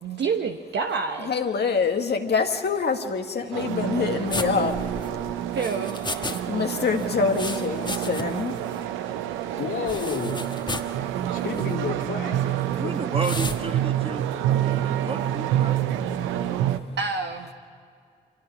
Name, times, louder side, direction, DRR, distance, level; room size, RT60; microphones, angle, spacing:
voice 1, 0.0-1.3 5.5-6.1 17.0-17.5, right 5 dB, 65° right, 3 dB, 1.1 m, -28 dB
voice 2, 1.3-4.7 6.2-8.6, left 5 dB, 60° left, 4 dB, 1.5 m, -25 dB
sound 1, 3.5-16.8, right 11 dB, 90° right, 0.6 m, -27 dB
sound 2, 4.3-6.4 6.7-8.5 8.7-8.8 9.9-11.0 11.5-11.7 13.2-13.6, left 2 dB, 25° left, 1.5 m, -34 dB
voice 3, 9.6-10.4 11.3-12.4 12.8-13.0, left 6 dB, 80° left, 1 dB, 2.4 m, -30 dB
voice 4, 12.7-14.2 14.5-15.8, right 3 dB, 30° right, 5 dB, 1.8 m, -33 dB
24.0 x 17.5 x 6.1 m, 2.2 s
supercardioid pair, 40°, 20 cm